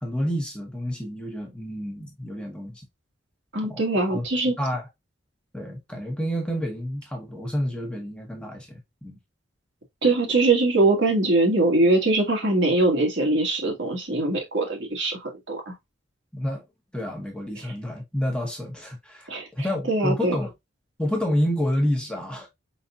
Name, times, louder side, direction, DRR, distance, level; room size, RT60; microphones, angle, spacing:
voice 1, 0.0-2.8 3.7-3.8 4.1-4.2 4.6-4.9 5.5-9.2 16.3-16.6 16.9-20.5 21.0-22.5, equal, 5° left, 1.0 m, -29 dB
voice 2, 3.5-4.5 10.0-15.7 19.3-20.3, right 2 dB, 70° right, 1.7 m, -22 dB
4.9 x 4.1 x 2.4 m
head